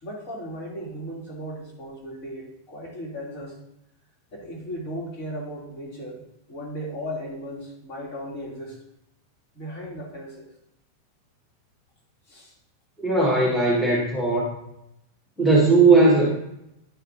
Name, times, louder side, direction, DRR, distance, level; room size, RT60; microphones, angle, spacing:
voice 1, 0.0-3.6 4.3-6.2 6.5-8.8 9.5-10.5 12.3-12.5, equal, 40° left, -4 dB, 2.9 m, -36 dB
voice 2, 13.0-14.5 15.4-16.3, right 3 dB, 5° left, -5 dB, 1.8 m, -18 dB
10.5 x 5.6 x 2.7 m, 0.84 s
figure-of-eight pair, 90°, 0 cm